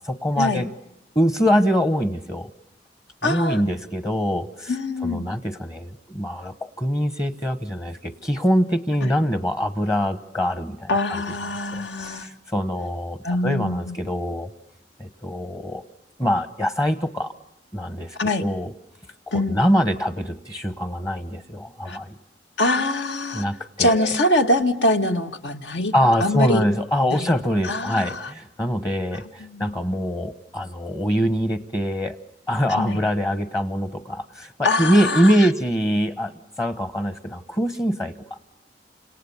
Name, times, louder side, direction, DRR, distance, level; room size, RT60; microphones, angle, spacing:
voice 1, 0.0-0.7 1.1-2.5 3.2-4.7 5.0-11.2 11.7-14.5 15.0-15.8 16.2-17.3 17.7-18.7 19.3-22.2 23.3-24.1 25.9-32.2 32.5-38.1, equal, 20° left, 11 dB, 1.0 m, -24 dB
voice 2, 3.2-3.6 4.7-5.3 9.0-9.1 10.9-12.3 13.2-14.0 18.2-18.4 19.3-19.6 21.9-22.0 22.6-23.4 23.8-25.9 26.2-26.6 27.1-27.3 27.6-28.3 29.4-29.7 32.7-33.0 34.6-35.4, left 1 dB, 75° left, 6 dB, 2.0 m, -23 dB
29.5 x 26.5 x 7.1 m, 0.83 s
head